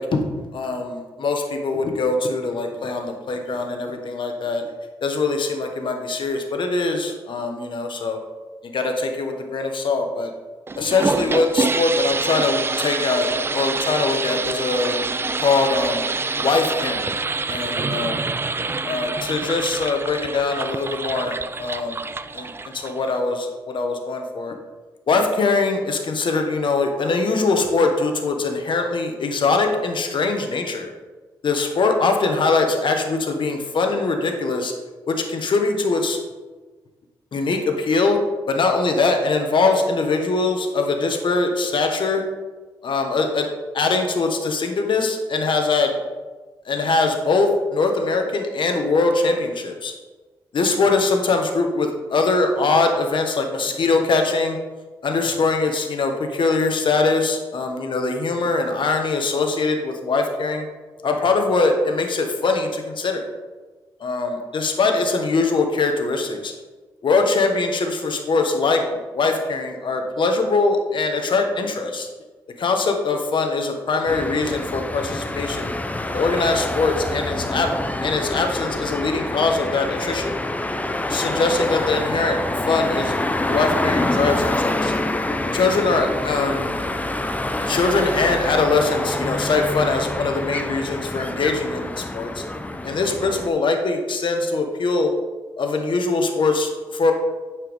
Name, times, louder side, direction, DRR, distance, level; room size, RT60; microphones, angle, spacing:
voice 1, 0.0-4.6 5.0-8.2 8.6-10.3 10.8-15.0 15.4-16.0 16.4-17.2 17.5-18.2 18.8-22.0 22.3-24.6 25.1-30.9 31.4-34.7 35.1-36.2 37.3-38.2 38.5-42.2 42.8-43.5 43.7-45.9 46.6-49.9 50.5-54.6 55.0-60.6 61.0-63.3 64.0-66.5 67.0-72.1 72.6-75.7 76.1-77.7 78.0-80.3 81.1-82.4 82.7-84.9 85.5-86.8 87.7-92.4 92.8-95.1 95.6-97.1, left 3 dB, 60° left, 4 dB, 1.2 m, -22 dB
sound 1, 10.7-23.2, right 3 dB, 25° right, 0.4 m, -26 dB
sound 2, 74.1-93.5, left 1 dB, 15° left, 0.6 m, -26 dB
9.2 x 4.6 x 3.6 m, 1.3 s
supercardioid pair, 55°, 9 cm